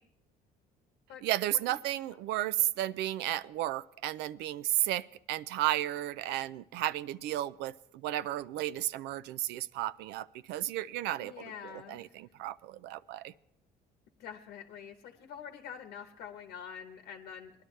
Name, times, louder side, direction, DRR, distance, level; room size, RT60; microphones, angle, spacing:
voice 1, 1.2-13.3, right 14 dB, 85° right, 17 dB, 0.4 m, -33 dB
voice 2, 11.2-12.1 14.2-17.5, left 8 dB, 85° left, 5 dB, 1.0 m, -46 dB
20.0 x 11.5 x 3.2 m, 0.82 s
cardioid pair, 110°, 17 cm